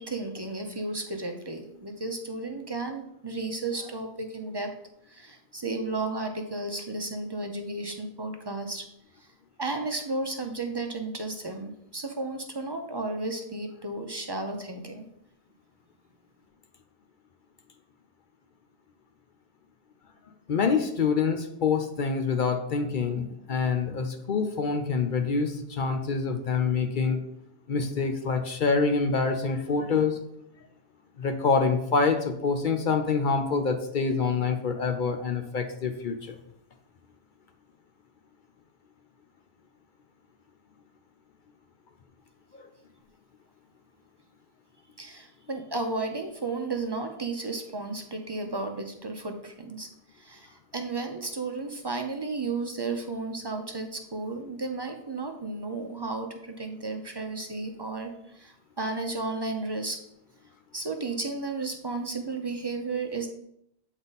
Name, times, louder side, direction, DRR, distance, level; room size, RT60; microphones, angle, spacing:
voice 1, 0.0-4.7 5.1-8.8 9.6-15.1 45.0-49.9 50.2-60.0 60.7-63.3, right 3 dB, 35° right, 4 dB, 0.4 m, -33 dB
voice 2, 20.5-27.2 27.7-30.2 31.2-36.3 42.5-42.6, left 5 dB, 55° left, 6 dB, 0.7 m, -26 dB
8.1 x 3.7 x 4.0 m, 0.75 s
omnidirectional pair, 1.2 m